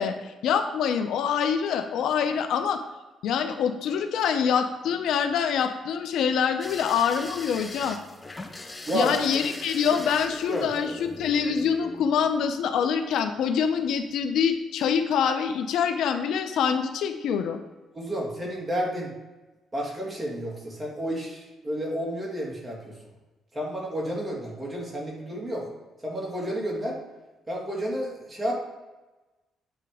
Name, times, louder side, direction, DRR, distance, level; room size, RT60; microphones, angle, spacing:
voice 1, 0.0-2.8 3.2-8.0 8.9-17.6, left 7 dB, 80° left, 7 dB, 0.6 m, -25 dB
sound 1, 6.6-12.6 13.9-14.2 14.5-14.6, left 2 dB, 20° left, 0.7 m, -41 dB
voice 2, 8.9-9.2 10.5-10.7 17.9-19.1 19.7-22.9 23.5-25.7 26.0-27.0 27.5-28.6, equal, 20° right, -2 dB, 2.3 m, -31 dB
8.9 x 3.3 x 4.8 m, 1.1 s
cardioid pair, 90°, 0 cm